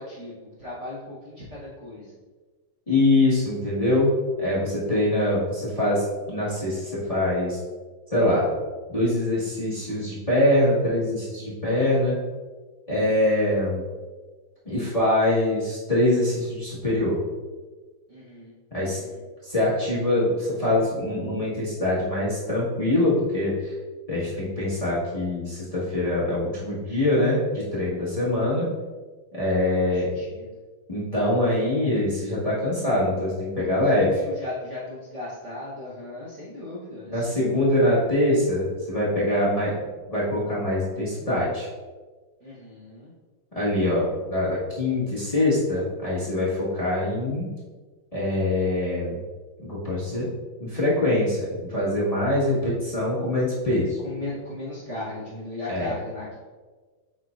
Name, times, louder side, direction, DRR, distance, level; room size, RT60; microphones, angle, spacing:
voice 1, 0.0-2.2 18.1-18.6 18.8-19.2 29.9-30.6 33.5-37.8 42.4-43.1 54.0-56.4, left 2 dB, 40° right, -7 dB, 1.3 m, -37 dB
voice 2, 2.9-4.1 4.4-7.6 8.1-8.5 8.9-12.1 12.9-13.8 14.6-17.2 18.7-19.0 19.4-23.7 24.1-27.4 27.7-28.6 29.3-30.1 30.9-34.1 37.1-39.8 40.1-41.7 43.5-47.5 48.1-49.2 49.6-50.3 50.6-54.0 55.7-55.9, left 1 dB, 20° left, -9 dB, 1.5 m, -24 dB
7.3 x 5.4 x 2.6 m, 1.3 s
omnidirectional pair, 2.3 m